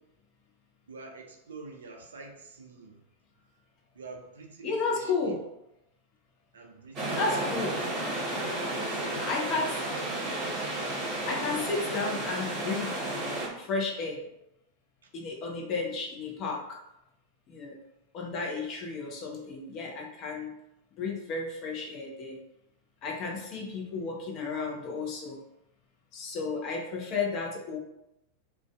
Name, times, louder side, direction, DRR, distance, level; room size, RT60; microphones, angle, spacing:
voice 1, 0.9-3.0 3.9-5.4 6.5-7.2 8.7-10.2 11.5-11.7, right 3 dB, 65° right, 3 dB, 0.4 m, -47 dB
voice 2, 4.6-5.4 7.2-7.8 9.2-9.8 11.3-13.0 13.6-14.2 15.1-16.8 17.5-17.8 18.1-20.5 21.0-22.4 23.0-25.4 26.1-27.8, left 4 dB, 35° left, -1 dB, 0.6 m, -33 dB
sound 1, 7.0-13.5, right 1 dB, 30° right, 0.8 m, -32 dB
2.5 x 2.2 x 2.2 m, 0.85 s
figure-of-eight pair, 90°, 0 cm